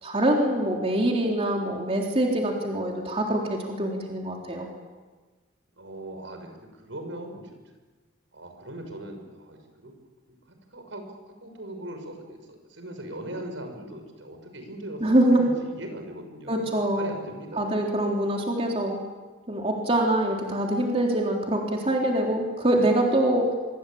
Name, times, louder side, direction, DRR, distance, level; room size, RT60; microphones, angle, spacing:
voice 1, 0.0-4.7 15.0-15.4 16.5-17.1 17.5-19.0 19.5-23.5, right 1 dB, 30° right, 0 dB, 3.7 m, -24 dB
voice 2, 5.8-7.6 8.3-9.9 10.3-10.4 10.7-11.1 11.4-17.8, right 1 dB, 75° right, 5 dB, 6.1 m, -39 dB
25.5 x 25.0 x 8.8 m, 1.3 s
head